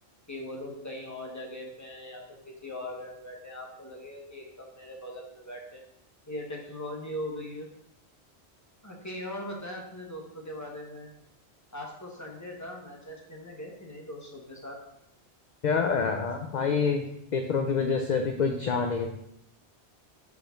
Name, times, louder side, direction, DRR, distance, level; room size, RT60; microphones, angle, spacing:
voice 1, 0.3-5.8 6.3-7.7 8.8-11.1 11.7-14.7, left 1 dB, 15° left, -1 dB, 1.3 m, -40 dB
voice 2, 15.6-17.1 17.3-19.1, left 5 dB, 50° left, 4 dB, 0.6 m, -26 dB
5.5 x 4.6 x 5.1 m, 0.77 s
omnidirectional pair, 1.1 m